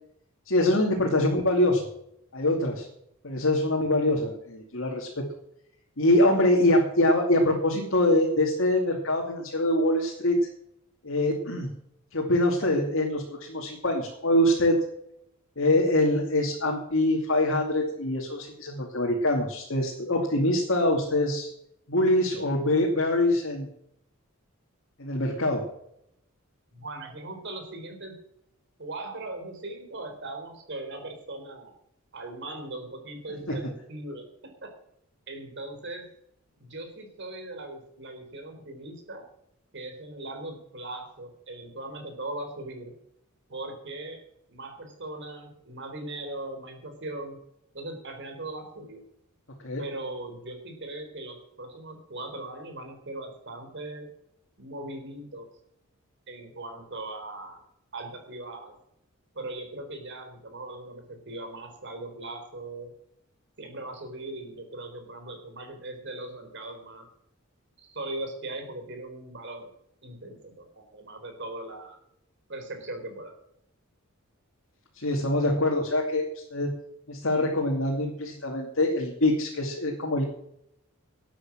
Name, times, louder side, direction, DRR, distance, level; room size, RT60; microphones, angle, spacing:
voice 1, 0.5-1.9 2.3-2.9 3.2-5.3 6.0-10.4 11.0-11.7 12.1-14.8 15.6-21.5 21.9-23.7 25.0-25.6 33.5-33.6 49.6-49.8 74.9-76.2 76.5-76.7 77.1-80.2, left 1 dB, 65° left, -1 dB, 2.6 m, -24 dB
voice 2, 26.7-28.1 28.8-31.7 32.1-34.7 35.3-36.1 36.6-39.2 39.7-43.0 43.5-44.2 44.5-47.4 47.7-49.0 49.8-54.1 54.6-55.5 56.3-57.6 57.9-58.8 59.3-62.9 63.6-67.1 67.8-69.7 70.0-72.0 72.5-73.3, right 2 dB, 55° right, 5 dB, 3.9 m, -39 dB
12.5 x 9.0 x 7.4 m, 0.75 s
head